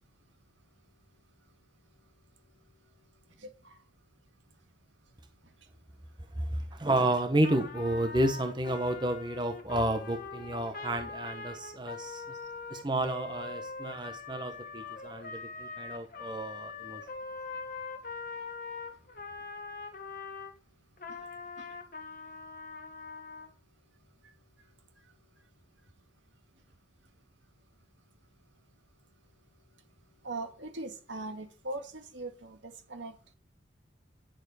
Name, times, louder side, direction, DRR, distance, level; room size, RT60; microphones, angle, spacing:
voice 1, 6.3-12.2 12.7-17.0, right 1 dB, 25° right, 1.1 m, -31 dB
Trumpet, 7.4-20.5 21.0-23.5, left 4 dB, 45° left, 1.4 m, -42 dB
voice 2, 30.2-33.3, right 2 dB, 80° right, 2.1 m, -40 dB
10.5 x 7.0 x 5.0 m
head